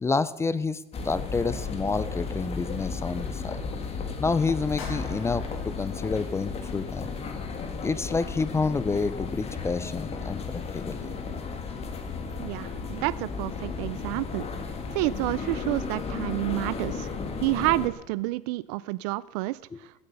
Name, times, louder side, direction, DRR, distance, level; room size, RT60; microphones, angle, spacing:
voice 1, 0.0-3.6 4.2-7.1 7.8-11.1 19.7-19.8, left 4 dB, 15° left, 16 dB, 0.4 m, -29 dB
sound 1, 0.9-17.9, left 4 dB, 30° left, 1.9 m, -34 dB
sound 2, 4.8-7.0, left 3 dB, 65° left, 6.3 m, -44 dB
voice 2, 12.4-14.5 14.9-17.1 17.4-20.0, right 20 dB, 75° right, 19 dB, 0.4 m, -29 dB
16.0 x 9.6 x 6.8 m, 0.98 s
supercardioid pair, 135°, 21 cm